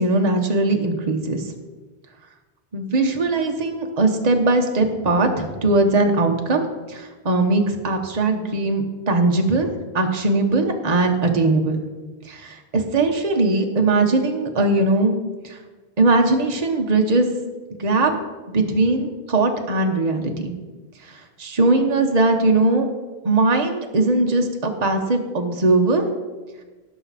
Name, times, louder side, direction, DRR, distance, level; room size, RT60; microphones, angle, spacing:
voice 1, 0.0-1.5 2.7-9.7 9.9-11.8 12.2-15.2 15.4-15.6 16.0-17.3 17.8-18.1 18.5-20.5 21.1-22.9 23.2-26.1, right 2 dB, 40° right, 3 dB, 1.1 m, -20 dB
17.5 x 6.1 x 4.2 m, 1.3 s
omnidirectional pair, 1.0 m